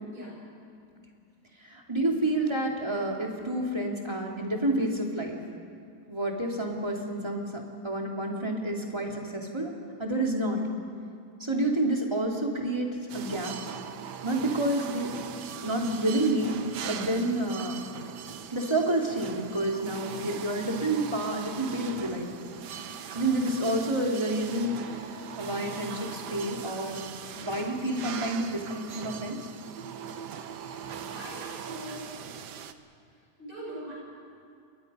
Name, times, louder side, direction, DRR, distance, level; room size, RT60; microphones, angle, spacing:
voice 1, 1.6-5.4 6.1-9.7 10.0-10.7 11.4-13.6 14.2-16.6 16.8-17.8 18.5-22.3 23.1-27.0 27.4-29.5, right 1 dB, 15° right, 0 dB, 2.7 m, -29 dB
sound 1, 13.1-32.7, right 8 dB, 75° right, 1.5 m, -40 dB
voice 2, 31.1-32.2 33.4-33.9, right 1 dB, 50° right, -5 dB, 7.5 m, -42 dB
29.0 x 21.5 x 5.5 m, 2.3 s
omnidirectional pair, 1.8 m